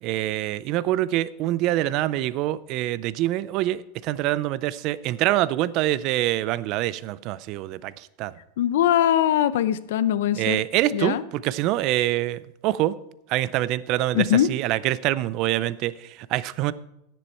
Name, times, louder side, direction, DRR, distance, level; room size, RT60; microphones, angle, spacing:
voice 1, 0.0-8.3 10.4-12.9 13.3-16.7, right 15 dB, 45° right, 18 dB, 0.5 m, -25 dB
voice 2, 8.6-10.6 10.9-11.2 14.1-14.5, left 11 dB, 80° left, 16 dB, 0.6 m, -21 dB
10.0 x 10.0 x 4.3 m, 0.84 s
supercardioid pair, 150°, 0 cm